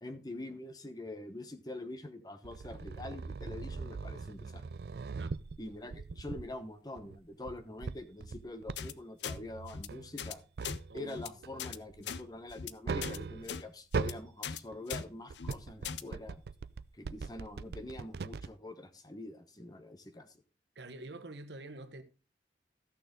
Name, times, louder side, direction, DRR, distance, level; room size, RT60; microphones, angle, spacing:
voice 1, 0.0-4.6 5.6-10.4 10.9-16.4 16.9-20.4, left 2 dB, 20° left, 1.1 m, -45 dB
sound 1, 2.4-6.6 7.0-8.8 9.3-11.1 11.4-13.6 13.9-14.3 14.7-18.5, right 4 dB, 65° right, 0.4 m, -41 dB
sound 2, 8.8-8.9 9.2-9.4 9.7-9.9 10.2-10.3 10.6-10.8 11.1-11.3 11.6-11.8 12.0-12.2 12.5-12.7 13.0-13.2 13.5-13.6 13.9-14.1 14.4-14.6 14.9-15.0 15.3-15.5 15.8-16.0, left 7 dB, 85° left, 0.6 m, -39 dB
voice 2, 10.9-11.2 20.7-22.0, right 2 dB, 85° right, 1.2 m, -46 dB
14.0 x 6.6 x 3.9 m
head